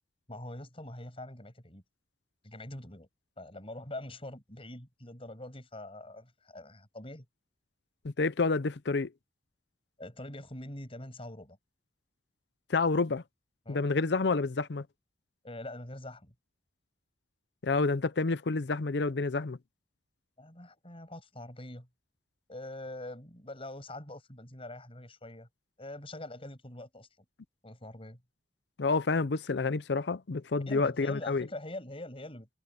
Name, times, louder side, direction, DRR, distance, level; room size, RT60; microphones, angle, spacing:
voice 1, 0.3-1.8 2.4-3.1 3.4-7.3 10.0-11.6 13.7-13.9 15.4-16.3 20.4-21.9 22.5-25.5 25.8-27.1 27.6-28.2 30.7-32.5, left 1 dB, 30° left, 7.7 m, -44 dB
voice 2, 8.0-9.1 12.7-13.2 13.7-14.8 17.6-19.6 28.8-31.5, left 3 dB, 75° left, 0.6 m, -29 dB
head